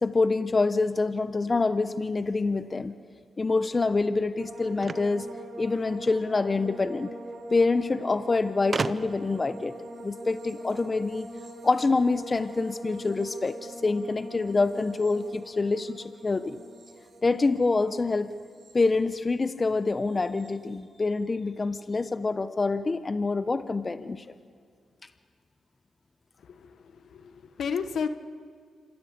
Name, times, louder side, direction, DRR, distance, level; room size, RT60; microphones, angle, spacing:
voice 1, 0.0-2.9 3.4-5.3 5.6-7.1 7.5-11.3 11.6-16.6 17.2-18.3 18.7-24.2, left 3 dB, 35° left, 12 dB, 0.9 m, -26 dB
sound 1, 4.4-19.6 19.9-20.5, right 1 dB, 65° right, 5.8 m, -44 dB
sound 2, 4.8-6.2 7.3-7.4 7.6-7.7 8.7-9.4, right 4 dB, 45° right, 0.8 m, -33 dB
voice 2, 27.1-28.1, left 6 dB, 70° left, 10 dB, 1.2 m, -31 dB
26.5 x 15.0 x 8.2 m, 2.1 s
supercardioid pair, 50°, 0 cm